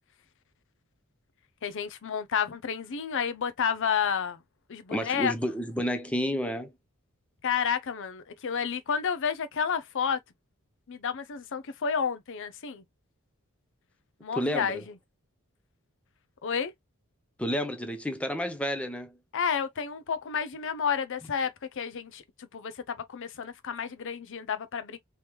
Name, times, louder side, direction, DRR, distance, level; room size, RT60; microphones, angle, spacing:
voice 1, 1.6-4.4 4.7-5.3 7.4-10.2 10.9-12.8 14.2-14.8 16.4-16.7 19.3-25.0, left 7 dB, 60° left, 0.6 m, -30 dB
voice 2, 4.9-6.7 14.4-14.8 17.4-19.2, equal, 5° left, 0.6 m, -30 dB
3.5 x 3.0 x 3.0 m
head